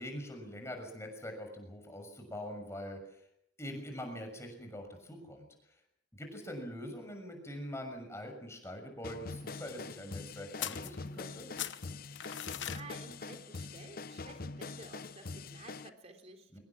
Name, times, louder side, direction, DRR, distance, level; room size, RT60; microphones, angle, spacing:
voice 1, 0.0-3.2 3.6-5.5 6.1-11.5 16.5-16.6, equal, 15° left, 4 dB, 6.6 m, -44 dB
sound 1, 9.0-15.9, left 3 dB, 55° left, 0.8 m, -44 dB
sound 2, 10.6-11.3 11.6-12.8, left 10 dB, 85° left, 1.2 m, -40 dB
voice 2, 12.3-16.6, right 3 dB, 35° right, 6 dB, 3.6 m, -53 dB
24.5 x 19.5 x 7.5 m, 0.75 s
head